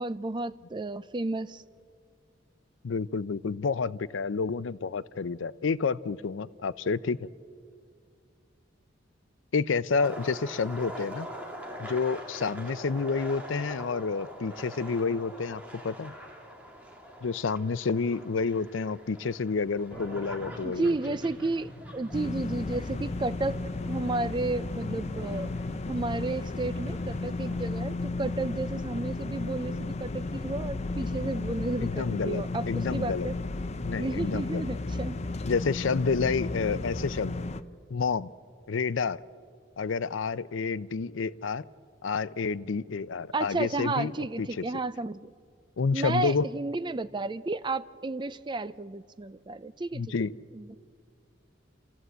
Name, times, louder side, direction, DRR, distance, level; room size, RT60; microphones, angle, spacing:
voice 1, 0.0-1.6 20.6-23.6 23.9-25.5 25.9-33.4 34.0-35.2 43.3-45.3 45.9-50.1 50.5-50.8, right 2 dB, 25° right, 0.4 m, -32 dB
voice 2, 2.8-7.3 9.5-11.3 11.8-16.1 17.2-21.0 31.8-33.3 33.8-34.7 35.4-37.4 37.9-38.3 38.7-39.2 39.8-41.6 42.0-44.1 44.4-44.6 45.8-46.5 49.9-50.3, left 4 dB, 85° left, 0.5 m, -29 dB
sound 1, 10.0-27.8, equal, 10° right, 2.5 m, -45 dB
sound 2, 19.9-27.3, left 1 dB, 15° left, 5.3 m, -47 dB
sound 3, 22.1-37.6, left 2 dB, 35° left, 0.6 m, -33 dB
28.0 x 14.0 x 8.0 m
head